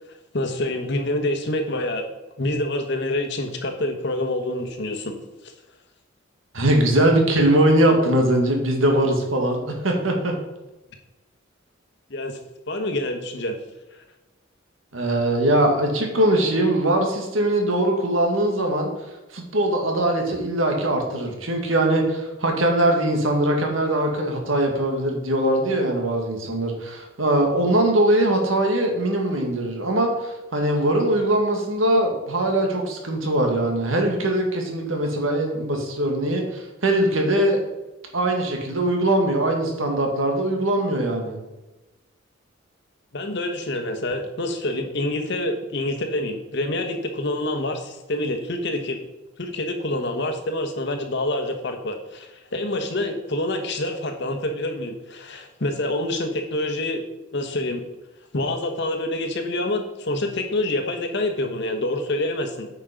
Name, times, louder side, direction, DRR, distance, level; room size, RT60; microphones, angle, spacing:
voice 1, 0.3-2.1 2.4-5.1 12.1-12.4 12.7-13.6 43.1-49.0 49.4-57.0 57.3-57.8 58.3-62.7, left 1 dB, 60° left, 5 dB, 1.2 m, -27 dB
voice 2, 6.5-10.3 14.9-18.9 19.3-37.6 38.1-41.4, right 1 dB, 80° right, 2 dB, 2.0 m, -21 dB
9.1 x 5.4 x 5.1 m, 1.0 s
head